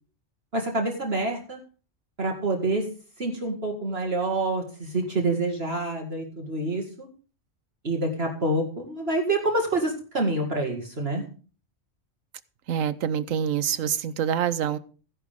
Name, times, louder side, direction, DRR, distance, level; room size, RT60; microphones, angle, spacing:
voice 1, 0.5-1.6 2.2-2.9 3.2-7.1 7.8-11.2, right 2 dB, 50° right, 1 dB, 2.2 m, -27 dB
voice 2, 12.7-14.8, right 9 dB, 85° right, 15 dB, 1.2 m, -26 dB
15.5 x 11.0 x 3.5 m, 0.37 s
omnidirectional pair, 1.3 m